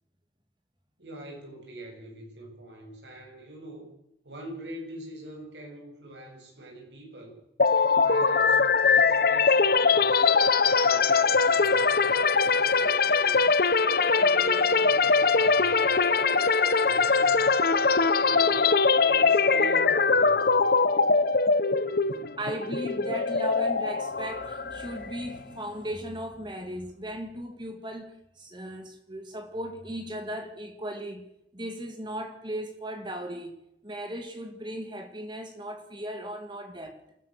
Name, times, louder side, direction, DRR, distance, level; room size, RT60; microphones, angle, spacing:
voice 1, 1.0-3.9 4.2-7.4 8.0-10.3 10.7-13.5 14.0-15.9 16.8-18.7 19.1-20.7, right 2 dB, 85° right, 7.8 m, -44 dB
sound 1, 7.6-25.4, left 4 dB, 60° left, 1.0 m, -22 dB
voice 2, 22.3-31.2 31.5-33.5 33.8-37.0, equal, 25° right, 2.3 m, -37 dB
28.0 x 15.0 x 6.7 m
head